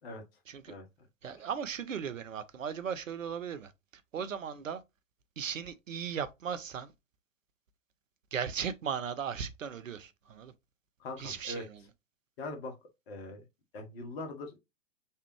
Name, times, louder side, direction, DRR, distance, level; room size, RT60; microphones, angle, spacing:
voice 1, 1.2-3.7 4.1-4.8 5.4-6.9 8.3-10.5 11.2-11.8, right 7 dB, 75° right, 0.7 m, -37 dB
voice 2, 11.0-11.6 12.4-12.8 13.1-13.4 13.7-14.6, left 2 dB, 50° left, 1.4 m, -41 dB
3.4 x 3.3 x 3.1 m
figure-of-eight pair, 110°, 39 cm